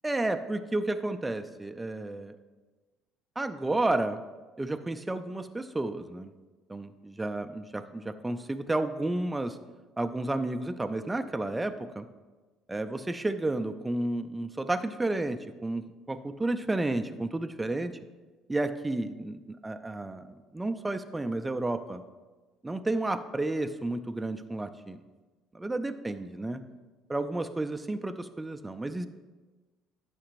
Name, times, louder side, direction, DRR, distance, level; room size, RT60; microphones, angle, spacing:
voice 1, 0.0-2.4 3.4-4.2 4.6-6.3 6.7-9.6 10.0-12.1 12.7-18.0 18.5-22.0 22.6-25.0 25.5-26.6 27.1-29.1, right 2 dB, 15° right, 9 dB, 0.5 m, -31 dB
11.0 x 5.2 x 2.6 m, 1.3 s
hypercardioid pair, 55°, 0 cm